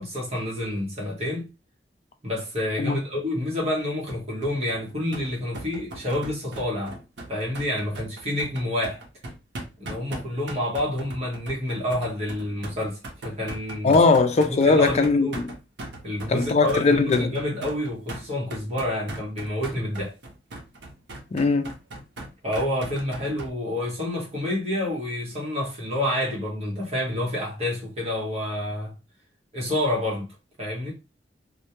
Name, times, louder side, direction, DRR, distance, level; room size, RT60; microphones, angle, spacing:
voice 1, 0.0-1.5 2.2-7.0 7.3-9.0 9.8-14.0 14.4-15.4 16.0-20.1 22.4-28.9 29.5-30.9, left 1 dB, 40° right, 0.9 m, -28 dB
sound 1, 4.1-23.5, right 1 dB, 80° right, 0.7 m, -39 dB
voice 2, 13.8-15.5 16.3-17.3 21.3-21.7, left 4 dB, 40° left, 0.3 m, -20 dB
2.2 x 2.1 x 2.8 m
head